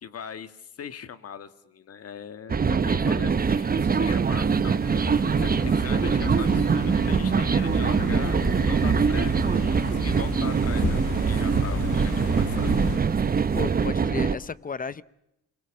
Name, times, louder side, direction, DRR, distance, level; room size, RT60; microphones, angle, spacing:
voice 1, 0.0-4.8 5.4-8.4 8.7-12.7, left 7 dB, 50° left, 1.8 m, -40 dB
sound 1, 2.5-14.3, right 5 dB, 30° right, 1.0 m, -23 dB
sound 2, 3.4-13.9, right 6 dB, 45° right, 2.0 m, -48 dB
sound 3, 4.8-13.0, left 8 dB, 80° left, 1.9 m, -35 dB
voice 2, 13.5-15.0, left 5 dB, 30° left, 0.8 m, -33 dB
28.0 x 21.5 x 7.5 m
cardioid pair, 90°, 30 cm